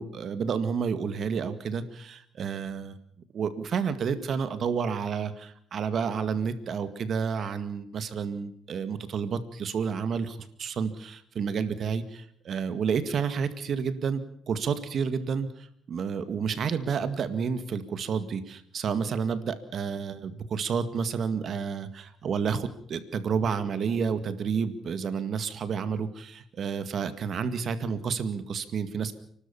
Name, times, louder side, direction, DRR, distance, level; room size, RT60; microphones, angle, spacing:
voice 1, 0.0-3.0 3.3-29.2, right 6 dB, 60° right, 12 dB, 2.0 m, -30 dB
29.5 x 12.5 x 7.1 m, 0.64 s
cardioid pair, 90°, 0 cm